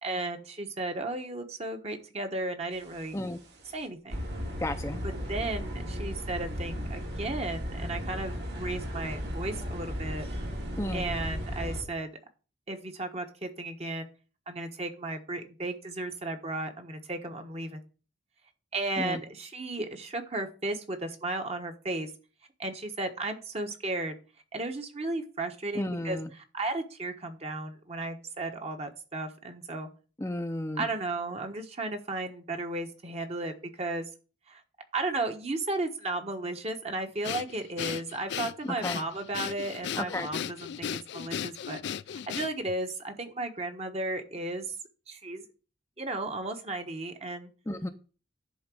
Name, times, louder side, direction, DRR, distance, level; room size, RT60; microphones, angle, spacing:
voice 1, 0.0-3.2 3.7-4.2 5.0-10.2 10.9-12.1 12.7-14.1 14.5-17.8 18.7-22.1 22.6-24.1 24.5-26.2 26.5-29.9 30.8-33.5 33.8-34.1 34.5-34.6 34.9-41.8 42.3-44.7 45.1-45.4 46.0-47.5, right 2 dB, 35° right, 5 dB, 1.2 m, -34 dB
sound 1, 2.9-3.2 3.6-3.7 4.1-11.8, equal, 60° right, 2.4 m, -35 dB
voice 2, 4.6-5.0 10.8-11.1 19.0-19.2 25.7-26.3 30.2-30.9 38.6-39.0 39.9-40.3 47.7-47.9, left 1 dB, 15° left, 6 dB, 0.6 m, -33 dB
Breathing, 37.2-42.8, left 9 dB, 65° left, 0.3 m, -36 dB
10.5 x 4.0 x 6.2 m, 0.37 s
head